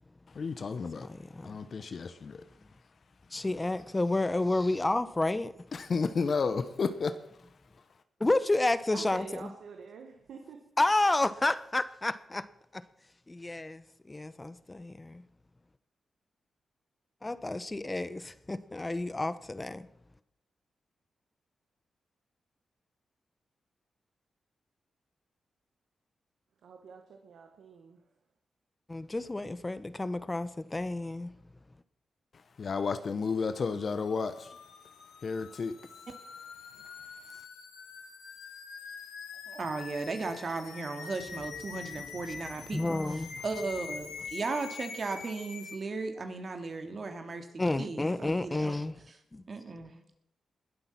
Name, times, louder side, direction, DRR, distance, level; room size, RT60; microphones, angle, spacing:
voice 1, 0.3-1.1 1.4-2.4 5.7-7.2 32.6-34.6 35.2-35.8, left 5 dB, 60° left, 0.9 m, -32 dB
voice 2, 1.0-1.6 3.3-5.5 8.2-9.2 10.8-12.5 12.7-12.8 13.3-15.2 17.2-19.9 28.9-31.3 42.7-43.4 47.6-48.9 49.3-49.4, left 2 dB, 25° left, 1.0 m, -30 dB
voice 3, 8.9-10.7 26.6-28.0, right 5 dB, 80° right, 1.4 m, -47 dB
sound 1, 33.5-45.8, left 5 dB, 90° left, 2.1 m, -45 dB
voice 4, 39.5-47.5 47.8-48.8 49.5-50.2, right 3 dB, 55° right, 2.6 m, -36 dB
20.5 x 7.8 x 6.0 m
supercardioid pair, 45°, 0 cm